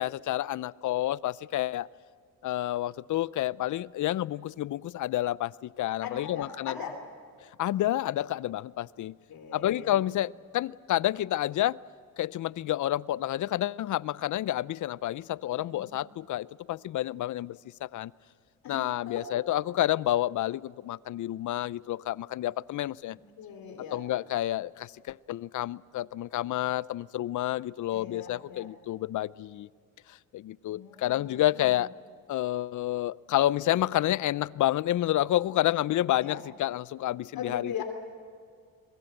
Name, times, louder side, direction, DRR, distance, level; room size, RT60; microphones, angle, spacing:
voice 1, 0.0-1.9 2.4-6.7 7.6-9.2 9.5-11.8 12.2-18.1 18.7-23.2 23.9-29.7 30.1-31.9 32.3-37.8, left 14 dB, 55° left, 21 dB, 0.5 m, -29 dB
voice 2, 6.0-7.0 9.3-10.0 15.5-15.9 18.6-19.4 23.4-24.0 27.9-28.7 30.7-31.9 36.2-36.4 37.3-37.8, left 7 dB, 70° left, 5 dB, 3.2 m, -40 dB
24.0 x 22.0 x 7.9 m, 2.2 s
cardioid pair, 100°, 37 cm